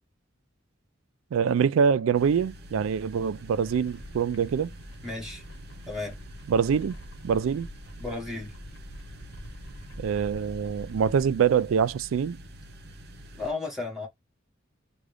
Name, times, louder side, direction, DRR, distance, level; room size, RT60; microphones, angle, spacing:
voice 1, 1.3-4.7 6.5-7.0 7.2-7.7 10.0-12.4, right 7 dB, 80° right, 0.3 m, -24 dB
sound 1, 2.1-13.5, equal, 55° right, 0.7 m, -46 dB
sound 2, 3.6-11.3, equal, 70° left, 1.0 m, -45 dB
voice 2, 5.0-5.4 5.9-6.2 8.0-8.5 13.3-14.1, left 3 dB, ahead, 1.8 m, -34 dB
3.7 x 2.3 x 3.3 m
head